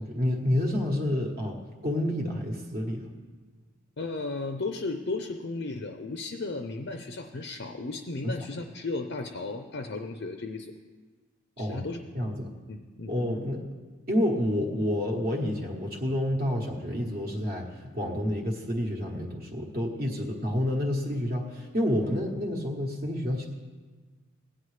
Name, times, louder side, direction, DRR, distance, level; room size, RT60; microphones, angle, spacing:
voice 1, 0.0-1.6 1.8-3.0 8.2-8.3 11.6-11.8 12.1-12.5 13.1-13.6 14.1-23.5, left 1 dB, 45° right, -1 dB, 1.1 m, -29 dB
voice 2, 4.0-10.7 11.6-12.3 12.7-13.1, left 3 dB, 50° left, 5 dB, 0.5 m, -35 dB
16.0 x 9.5 x 3.3 m, 1.4 s
head